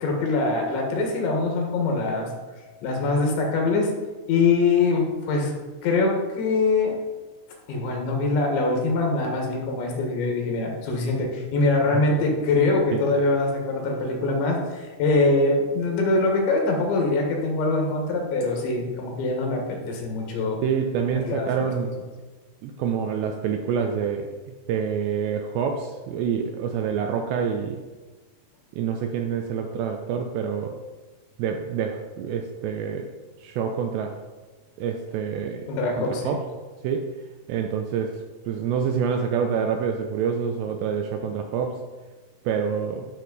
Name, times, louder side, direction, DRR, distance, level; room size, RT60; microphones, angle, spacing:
voice 1, 0.0-2.3 2.8-3.9 4.3-5.6 5.8-7.0 7.7-20.6 21.2-21.7 35.7-36.3, left 3 dB, 70° left, 1 dB, 3.7 m, -23 dB
voice 2, 20.6-22.0 22.6-24.3 24.7-27.8 28.7-30.8 31.4-33.1 33.4-34.2 34.8-35.7 36.0-36.4 36.8-37.1 37.5-41.8 42.5-43.1, right 7 dB, 80° right, 4 dB, 2.6 m, -27 dB
13.0 x 6.3 x 4.0 m, 1.3 s
omnidirectional pair, 5.5 m